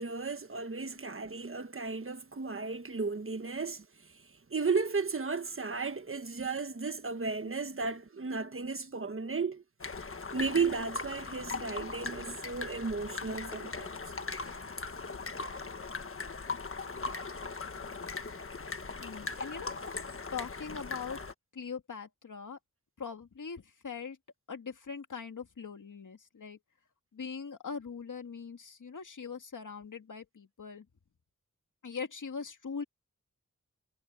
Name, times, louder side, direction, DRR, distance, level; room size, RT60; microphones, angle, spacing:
voice 1, 0.0-3.8 4.5-9.6 10.3-13.9, right 4 dB, 45° right, 1.4 m, -34 dB
sound 1, 9.8-21.3, left 4 dB, 45° left, 1.4 m, -39 dB
voice 2, 19.0-19.7 20.3-21.2 21.5-22.6 23.0-24.2 24.5-26.6 27.1-30.9 31.8-32.8, left 5 dB, 80° left, 2.4 m, -41 dB
wide cardioid pair, 85°, 30 cm